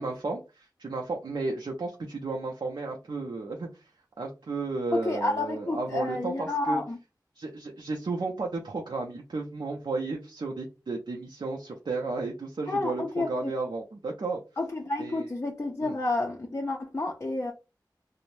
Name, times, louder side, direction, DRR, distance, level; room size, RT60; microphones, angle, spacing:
voice 1, 0.0-3.8 4.2-6.8 7.4-14.4 15.0-15.3 15.8-16.0, right 3 dB, 75° right, 0.5 m, -33 dB
voice 2, 4.9-7.0 12.7-13.5 14.6-17.5, left 2 dB, 35° left, 0.4 m, -30 dB
2.5 x 2.0 x 3.1 m
wide cardioid pair, 50°, 8 cm